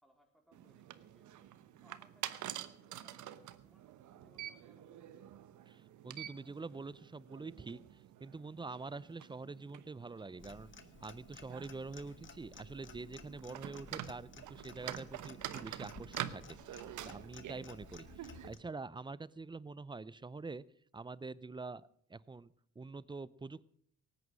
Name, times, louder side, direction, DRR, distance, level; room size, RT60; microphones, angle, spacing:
voice 1, 0.0-1.5 1.8-5.3, right 1 dB, ahead, 3 dB, 3.9 m, -69 dB
sound 1, 0.5-18.5, right 12 dB, 75° right, 1.0 m, -48 dB
voice 2, 5.7-10.7 11.0-20.6 20.9-23.7, right 3 dB, 15° right, 20 dB, 0.5 m, -46 dB
Clock, 10.4-18.6, left 5 dB, 40° left, 1.4 m, -56 dB
18.0 x 9.6 x 6.2 m, 0.67 s
cardioid pair, 90°, 30 cm